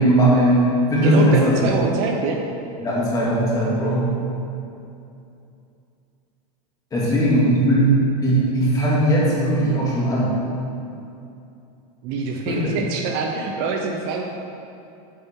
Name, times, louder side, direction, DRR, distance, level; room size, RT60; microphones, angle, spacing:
voice 1, 0.0-1.7 2.8-4.1 6.9-7.9 8.2-10.4 12.5-12.6, right 1 dB, 15° left, -6 dB, 2.1 m, -18 dB
voice 2, 1.0-2.4 7.0-7.5 12.0-14.2, right 4 dB, 45° right, 2 dB, 0.8 m, -25 dB
9.0 x 6.8 x 3.7 m, 2.7 s
supercardioid pair, 150°, 21 cm